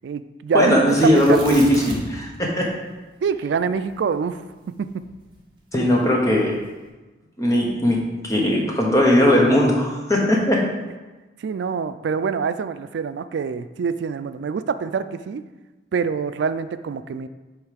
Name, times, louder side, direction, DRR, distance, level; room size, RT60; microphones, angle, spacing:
voice 1, 0.0-1.7 3.2-4.4 4.7-5.1 11.4-15.4 15.9-17.3, right 6 dB, 75° right, 12 dB, 0.3 m, -25 dB
voice 2, 0.5-2.7 5.7-6.5 7.4-8.0 8.2-10.6, left 1 dB, 15° left, -2 dB, 1.0 m, -18 dB
Tearing, 0.9-2.3 2.6-2.7 3.2-5.6 6.3-6.7, right 2 dB, 25° right, 1.2 m, -36 dB
8.0 x 3.2 x 5.1 m, 1.2 s
head